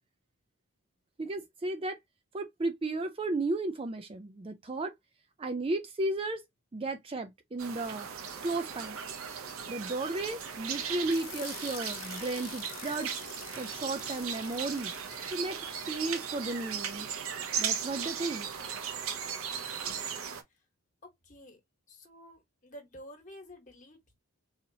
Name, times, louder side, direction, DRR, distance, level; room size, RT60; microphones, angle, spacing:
voice 1, 1.2-2.0 2.3-4.9 5.4-6.4 6.7-8.1 8.4-9.0 9.7-13.2 13.6-14.9 15.3-15.6 15.9-17.1 17.6-18.5, right 2 dB, 25° right, 0.3 m, -34 dB
sound 1, 7.6-20.4, right 7 dB, 75° right, 0.7 m, -37 dB
sound 2, 11.1-16.9, left 12 dB, 65° left, 0.5 m, -48 dB
voice 2, 21.2-21.6 21.9-24.1, equal, 35° left, 1.2 m, -51 dB
4.0 x 2.8 x 2.7 m
head